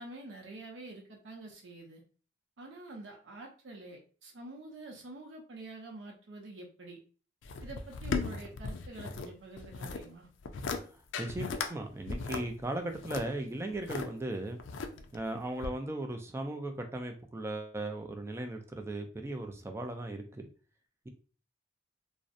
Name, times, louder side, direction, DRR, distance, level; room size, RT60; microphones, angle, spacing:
voice 1, 0.0-2.0 2.6-7.0 7.6-10.3, right 2 dB, 80° right, 0 dB, 0.6 m, -47 dB
sound 1, 7.4-9.3 9.6-10.0 10.4-10.8 11.1-11.7 12.1-14.1 14.6-15.2 15.6-15.7, left 4 dB, 85° left, 0.3 m, -36 dB
voice 2, 11.2-14.6 15.1-20.4, right 1 dB, 15° right, 5 dB, 0.3 m, -37 dB
2.6 x 2.0 x 2.4 m, 0.38 s
head